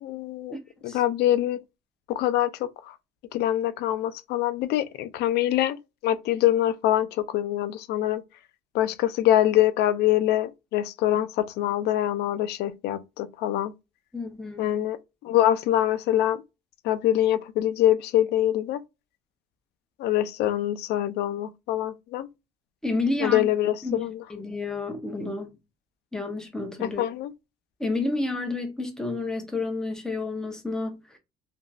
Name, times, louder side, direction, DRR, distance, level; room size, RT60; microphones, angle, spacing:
voice 1, 0.0-0.6 0.8-1.6 2.1-2.9 3.3-5.8 6.0-8.2 8.7-13.7 14.6-15.0 15.2-16.4 16.8-18.8 20.0-22.3 23.2-24.2 26.8-27.3, left 12 dB, 75° left, 0.4 m, -24 dB
voice 2, 14.1-14.7 22.8-23.4 23.8-25.5 26.1-27.0 27.8-31.2, left 3 dB, 5° left, 0.8 m, -30 dB
2.9 x 2.6 x 2.3 m
cardioid pair, 110°, 17 cm